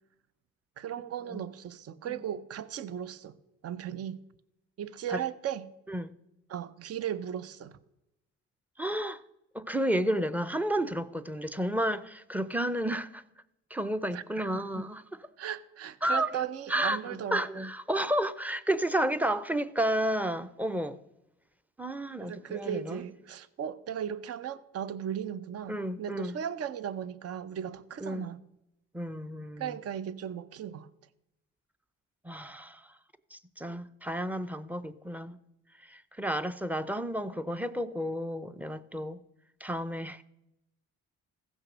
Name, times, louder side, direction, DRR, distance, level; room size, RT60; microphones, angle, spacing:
voice 1, 0.8-3.4 3.6-4.2 4.8-5.7 6.5-7.8 14.1-14.2 14.5-14.7 15.4-17.5 22.2-28.4 29.6-30.9, right 9 dB, 50° right, 0.7 m, -36 dB
voice 2, 8.8-9.2 9.5-13.2 13.7-15.3 16.0-21.0 21.8-23.0 25.7-26.3 28.0-28.3 28.9-29.8 32.2-32.9 33.3-35.4 35.8-39.2 39.6-40.2, right 1 dB, 5° right, 0.6 m, -32 dB
15.5 x 6.3 x 6.2 m
cardioid pair, 90°, 30 cm